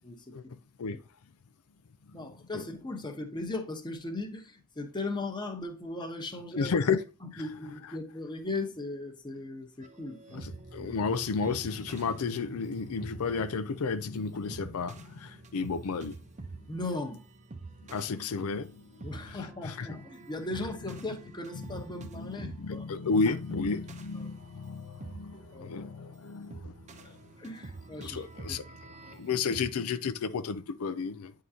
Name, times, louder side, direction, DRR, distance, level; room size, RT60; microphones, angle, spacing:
voice 1, 0.0-0.4 2.1-6.7 7.2-10.5 10.8-10.9 16.7-17.2 19.0-23.3 24.2-24.3 25.3-25.7 27.0-28.2 28.5-28.6, left 2 dB, 20° left, 1.0 m, -38 dB
voice 2, 6.6-7.0 7.3-7.4 10.3-16.2 17.9-18.9 19.2-19.9 21.6-21.7 22.0-27.2 28.0-28.6 29.0-31.3, left 5 dB, 90° left, 0.5 m, -32 dB
sound 1, 9.8-29.7, right 3 dB, 35° right, 0.6 m, -47 dB
9.2 x 3.8 x 2.7 m
head